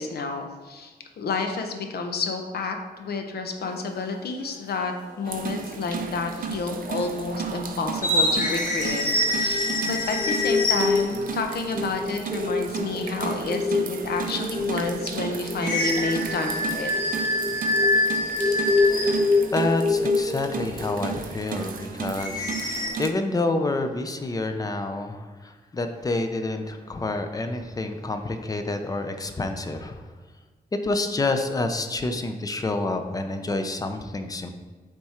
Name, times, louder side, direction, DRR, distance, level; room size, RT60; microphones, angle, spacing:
voice 1, 0.0-16.9, left 4 dB, 80° left, 5 dB, 0.8 m, -30 dB
sound 1, 3.6-3.9 5.1-5.2 6.2-6.6 6.8-7.0 7.9-11.2 15.6-19.4 22.2-22.9, left 1 dB, 55° left, 1.4 m, -26 dB
sound 2, 5.2-23.1, right 6 dB, 60° right, 0.5 m, -34 dB
sound 3, 9.1-21.2, left 3 dB, 5° right, 1.0 m, -27 dB
voice 2, 19.5-30.0 30.8-34.5, left 2 dB, 25° left, 6 dB, 0.5 m, -28 dB
7.4 x 3.6 x 4.3 m, 1.4 s
wide cardioid pair, 165°, 16 cm